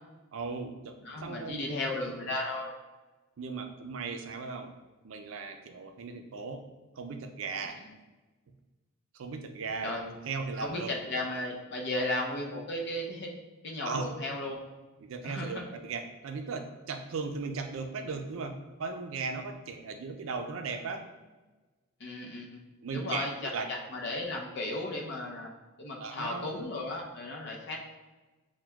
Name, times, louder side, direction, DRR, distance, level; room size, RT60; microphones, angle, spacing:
voice 1, 0.3-1.6 3.4-4.7 5.0-6.6 7.0-7.8 9.1-10.9 13.8-14.1 15.0-21.1 22.8-23.7 26.0-26.5, right 4 dB, 65° right, 6 dB, 0.4 m, -37 dB
voice 2, 1.0-2.7 9.8-10.0 10.6-13.3 13.6-14.6 15.2-15.6 22.0-22.6 22.9-25.5 25.8-27.8, left 2 dB, 55° left, 0 dB, 0.6 m, -35 dB
5.9 x 2.2 x 2.3 m, 1.2 s
head